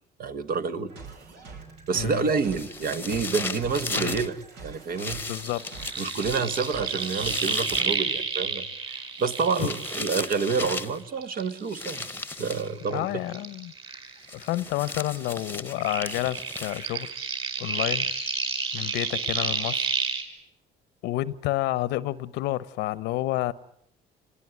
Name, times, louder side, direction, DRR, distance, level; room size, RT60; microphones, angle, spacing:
voice 1, 0.2-0.9 1.9-5.2 6.0-12.1 12.4-13.1, right 5 dB, 60° right, 1.7 m, -28 dB
sound 1, 0.9-7.8, right 4 dB, 80° right, 5.9 m, -45 dB
voice 2, 1.9-2.3 4.0-4.2 5.3-5.6 9.6-9.7 12.9-13.7 14.3-17.1 17.6-18.1 18.7-19.9 21.0-23.5, left 16 dB, 90° left, 1.0 m, -29 dB
sound 2, 2.4-4.3 5.0-8.0 9.2-11.0 11.7-12.7 14.3-17.1, left 3 dB, 10° left, 1.1 m, -36 dB
sound 3, 5.4-10.9 11.2-14.6 14.8-20.2, right 4 dB, 30° right, 5.7 m, -31 dB
27.0 x 20.0 x 9.5 m
cardioid pair, 110°, 17 cm